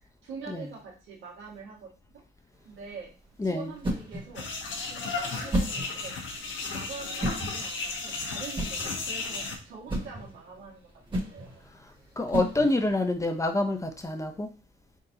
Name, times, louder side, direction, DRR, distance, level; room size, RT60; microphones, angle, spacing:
voice 1, 0.2-1.9 2.6-3.1 3.4-4.5 4.9-6.2 6.7-10.8 11.1-11.6, right 5 dB, 80° right, 1.7 m, -44 dB
sound 1, 2.5-13.1, right 1 dB, 25° right, 1.3 m, -35 dB
voice 2, 3.4-3.7 12.2-14.5, left 2 dB, 15° left, 0.6 m, -27 dB
sound 2, 4.3-9.6, left 4 dB, 75° left, 1.0 m, -34 dB
3.9 x 3.8 x 2.7 m
cardioid pair, 90°, 20 cm